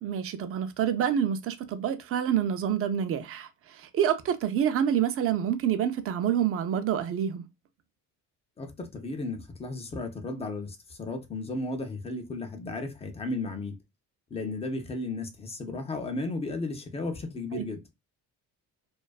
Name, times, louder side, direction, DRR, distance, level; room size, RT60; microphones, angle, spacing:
voice 1, 0.0-7.5 17.5-17.6, right 9 dB, 45° right, 0.4 m, -27 dB
voice 2, 8.6-13.8 14.3-17.8, left 2 dB, 20° left, 0.4 m, -34 dB
2.5 x 2.2 x 2.3 m
cardioid pair, 140°, 33 cm